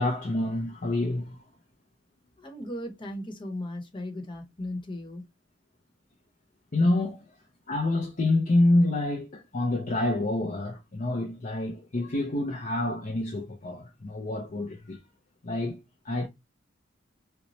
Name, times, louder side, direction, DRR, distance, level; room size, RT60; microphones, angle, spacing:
voice 1, 0.0-1.4 6.7-7.3 7.7-15.0 15.4-15.8 16.0-16.3, left 2 dB, 45° left, 0.6 m, -27 dB
voice 2, 2.4-5.2, left 1 dB, 25° left, 1.0 m, -37 dB
4.0 x 2.2 x 3.0 m
head